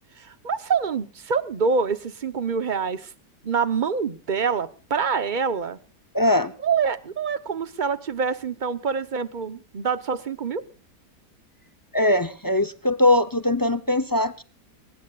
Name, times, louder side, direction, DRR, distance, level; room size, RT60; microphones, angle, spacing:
voice 1, 0.2-3.1 3.4-5.8 6.6-10.6, right 5 dB, 35° right, 13 dB, 0.9 m, -26 dB
voice 2, 6.1-6.5 11.9-14.4, left 1 dB, 30° left, 13 dB, 0.3 m, -21 dB
23.0 x 19.5 x 2.4 m, 0.34 s
omnidirectional pair, 1.8 m